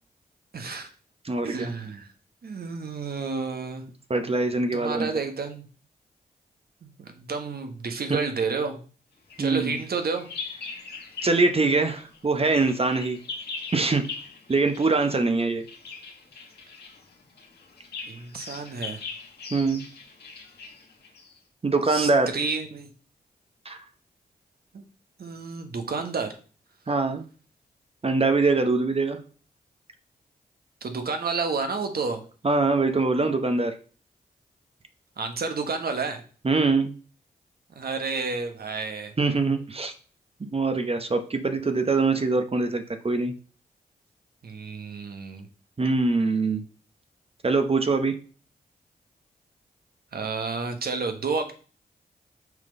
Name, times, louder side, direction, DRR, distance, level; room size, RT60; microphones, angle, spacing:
voice 1, 0.5-0.9 1.4-2.1 2.4-3.8 4.7-5.6 6.8-8.8 9.4-10.3 18.0-19.0 21.9-22.9 24.7-24.8 25.2-26.3 30.8-32.2 35.2-36.2 37.7-39.1 44.4-45.5 50.1-51.5, right 4 dB, 65° right, 6 dB, 1.3 m, -30 dB
voice 2, 1.2-1.7 4.1-5.1 8.1-8.2 9.4-9.7 11.2-13.2 13.7-14.1 14.5-15.6 19.5-19.9 21.6-22.3 23.6-23.8 26.9-27.2 28.0-29.2 32.4-33.8 36.4-36.9 39.2-39.9 40.4-43.3 45.8-46.6 47.4-48.2, right 3 dB, 35° right, 7 dB, 0.9 m, -23 dB
Bird vocalization bird call bird song, 9.3-11.6 11.9-21.4, left 4 dB, 80° left, 1.6 m, -41 dB
6.2 x 3.8 x 5.2 m, 0.39 s
cardioid pair, 50°, 17 cm